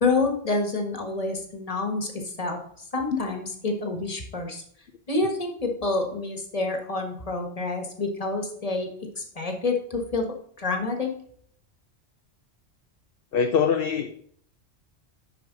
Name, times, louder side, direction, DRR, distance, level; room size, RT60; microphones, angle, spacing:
voice 1, 0.0-2.6 2.9-4.6 5.1-8.9 9.2-10.3 10.6-11.1, left 3 dB, 35° left, 3 dB, 1.5 m, -28 dB
voice 2, 13.3-14.2, left 6 dB, 60° left, 5 dB, 0.8 m, -23 dB
11.0 x 4.8 x 3.9 m, 0.62 s
omnidirectional pair, 1.1 m